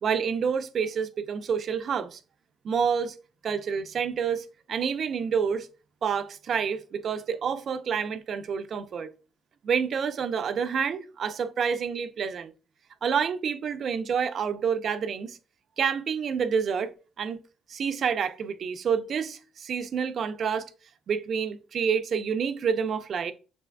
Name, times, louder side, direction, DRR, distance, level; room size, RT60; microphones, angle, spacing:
voice 1, 0.0-2.2 2.6-3.2 3.4-5.7 6.0-9.1 9.6-12.5 13.0-15.4 15.8-16.9 17.2-17.4 17.7-20.7 21.1-23.3, right 6 dB, 55° right, 0.6 m, -28 dB
6.6 x 3.5 x 2.2 m
supercardioid pair, 75°, 0 cm